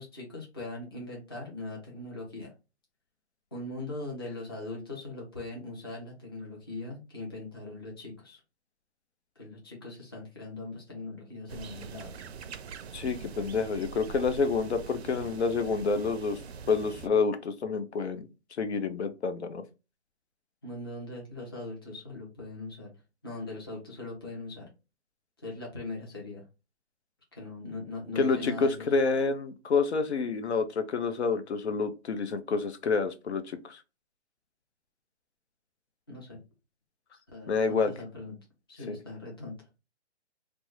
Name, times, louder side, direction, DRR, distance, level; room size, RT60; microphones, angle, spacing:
voice 1, 0.0-2.5 3.5-8.4 9.4-12.3 20.6-22.9 23.2-24.7 25.4-26.4 27.3-28.8 36.1-36.4 37.3-38.3 38.7-39.7, left 2 dB, 20° left, -2 dB, 0.5 m, -40 dB
sound 1, 11.5-17.1, right 5 dB, 65° right, 0.5 m, -43 dB
voice 2, 12.9-16.4 16.7-18.3 18.6-19.6 28.2-33.8 37.5-37.9 38.9-39.0, left 4 dB, 70° left, 10 dB, 0.6 m, -28 dB
3.4 x 2.0 x 3.0 m, 0.29 s
hypercardioid pair, 170°, 35 cm